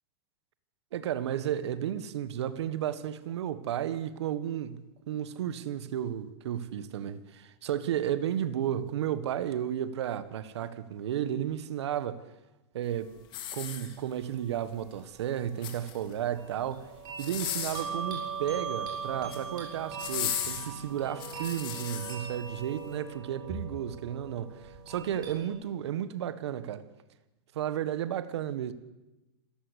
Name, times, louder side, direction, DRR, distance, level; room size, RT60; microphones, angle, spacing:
voice 1, 0.9-12.2 12.7-13.1 13.5-16.8 17.2-26.8 27.5-28.7, right 10 dB, 75° right, 1.7 m, -33 dB
sound 1, 13.3-14.3 15.4-16.2 17.1-17.9 19.0-19.5 20.0-22.2 22.7-22.9, left 10 dB, 35° left, 4.0 m, -36 dB
sound 2, 16.3-25.4, right 5 dB, 30° right, 7.3 m, -40 dB
26.5 x 15.5 x 8.3 m
supercardioid pair, 145°, 14 cm